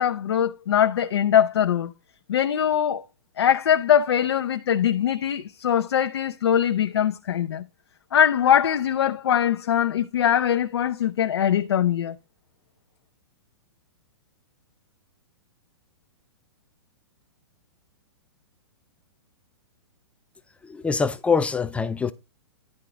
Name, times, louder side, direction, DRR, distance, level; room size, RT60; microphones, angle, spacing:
voice 1, 0.0-1.9 2.3-3.0 3.4-7.6 8.1-12.2, left 9 dB, 70° left, 0.5 m, -22 dB
voice 2, 20.6-22.1, left 5 dB, 10° left, 0.4 m, -24 dB
10.5 x 3.7 x 5.0 m
figure-of-eight pair, 115°, 14 cm